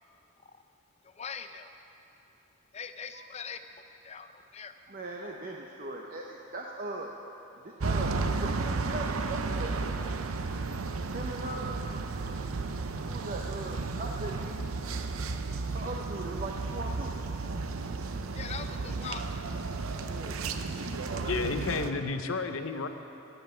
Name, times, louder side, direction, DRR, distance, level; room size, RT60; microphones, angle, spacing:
voice 1, 1.0-1.7 2.7-3.6 4.0-4.8 15.2-15.8 18.3-19.5, left 6 dB, 30° left, 9 dB, 0.5 m, -43 dB
voice 2, 4.9-7.1 7.6-10.0 11.1-11.8 12.2-12.4 12.9-14.6 15.5-17.2 17.5-17.6 20.1-21.9, right 2 dB, 40° right, 0 dB, 0.7 m, -40 dB
sound 1, 7.8-21.9, right 3 dB, 90° right, 0.7 m, -33 dB
voice 3, 21.2-22.9, left 4 dB, 75° left, 8 dB, 0.7 m, -31 dB
16.0 x 5.7 x 9.2 m, 3.0 s
head